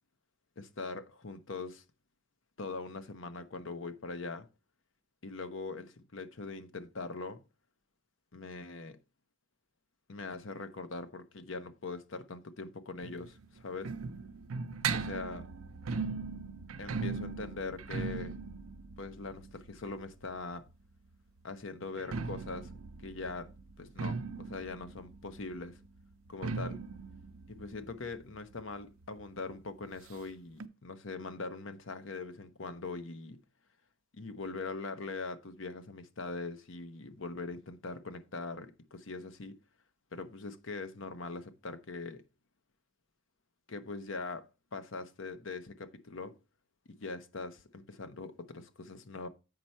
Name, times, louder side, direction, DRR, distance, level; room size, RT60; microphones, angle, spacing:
voice 1, 0.6-1.8 2.6-4.5 5.2-7.4 8.3-9.0 10.1-13.9 14.9-15.5 16.8-18.4 19.0-20.7 21.4-22.7 23.0-23.5 23.8-25.8 26.3-26.8 27.5-33.4 34.1-39.6 40.1-42.2 43.7-46.4 46.9-49.3, left 3 dB, 70° left, 0.8 m, -42 dB
sound 1, 13.0-20.7 21.8-29.2 29.5-29.6 29.8-29.9 30.6-30.7, right 4 dB, 85° right, 0.6 m, -39 dB
7.9 x 5.4 x 4.4 m
head